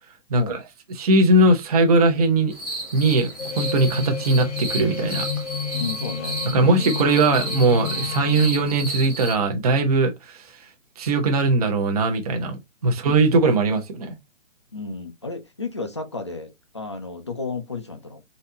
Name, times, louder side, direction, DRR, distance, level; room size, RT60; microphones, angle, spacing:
voice 1, 0.3-0.6 5.7-6.8 14.7-18.2, left 4 dB, 25° left, 0.4 m, -33 dB
voice 2, 0.9-2.5 2.9-5.3 6.5-10.4 11.0-14.2, right 2 dB, 30° right, 0.7 m, -20 dB
sound 1, 2.5-9.3, right 2 dB, ahead, 1.1 m, -33 dB
sound 2, 3.4-8.5, left 7 dB, 65° left, 0.9 m, -30 dB
4.1 x 2.7 x 3.8 m
hypercardioid pair, 170°, 37 cm